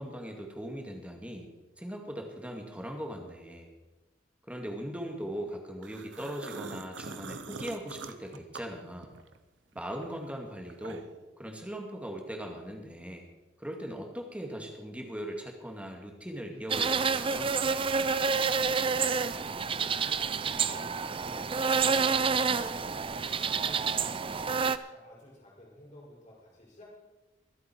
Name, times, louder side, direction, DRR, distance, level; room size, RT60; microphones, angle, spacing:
voice 1, 0.0-1.5 1.8-3.7 4.5-9.1 9.7-11.1 11.4-13.3 13.6-17.6, equal, 5° right, 2 dB, 2.1 m, -39 dB
sound 1, 5.8-9.4 9.7-11.2, right 4 dB, 80° right, 0.9 m, -44 dB
sound 2, 16.7-24.8, right 5 dB, 30° right, 0.5 m, -28 dB
voice 2, 18.5-27.0, left 1 dB, 40° left, -5 dB, 5.4 m, -52 dB
24.0 x 8.2 x 4.5 m, 1.1 s
head